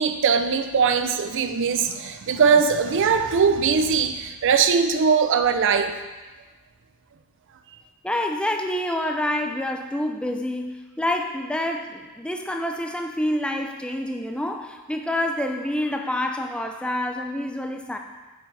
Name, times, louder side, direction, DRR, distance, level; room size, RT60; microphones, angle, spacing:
voice 1, 0.0-6.0, right 6 dB, 55° right, 8 dB, 0.4 m, -20 dB
voice 2, 8.0-18.0, left 1 dB, 5° left, 4 dB, 0.4 m, -27 dB
6.1 x 6.0 x 3.2 m, 1.2 s
head